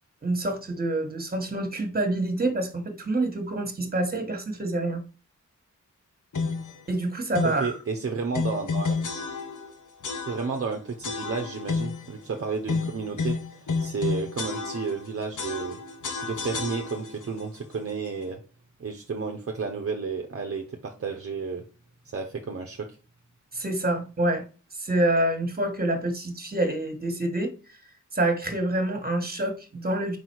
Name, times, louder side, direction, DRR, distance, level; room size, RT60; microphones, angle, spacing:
voice 1, 0.2-5.0 6.9-7.7 23.5-24.5 24.8-27.8 28.1-30.2, right 1 dB, 30° right, 1.5 m, -27 dB
sound 1, 6.3-6.8 7.3-7.7 8.3-9.7 10.0-10.7 11.0-12.1 12.7-15.1 15.4-17.2, left 4 dB, 70° left, 1.1 m, -30 dB
voice 2, 7.4-9.0 10.3-15.8 16.2-18.4 18.8-21.6 22.0-23.0, right 5 dB, 45° right, 0.9 m, -32 dB
5.1 x 4.0 x 4.6 m
wide cardioid pair, 90°, 31 cm